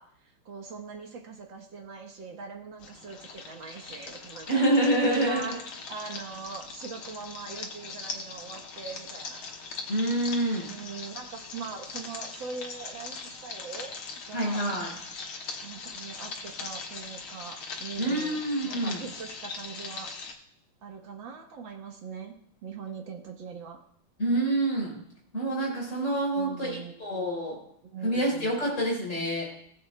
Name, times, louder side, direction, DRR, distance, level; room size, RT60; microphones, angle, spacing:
voice 1, 0.0-4.6 5.0-5.6 5.9-9.4 10.6-14.0 14.3-14.6 15.6-20.1 20.8-22.4 22.6-23.8 26.4-27.0 27.8-28.6, right 5 dB, 70° right, 2 dB, 2.0 m, -41 dB
sound 1, 2.8-20.3, left 4 dB, 80° left, 2.1 m, -41 dB
voice 2, 4.5-5.6 9.9-10.7 14.3-14.9 18.0-19.0 24.2-25.0 25.3-27.6 28.0-29.4, right 1 dB, 35° left, -3 dB, 4.8 m, -27 dB
19.0 x 7.8 x 2.2 m, 0.70 s
omnidirectional pair, 2.2 m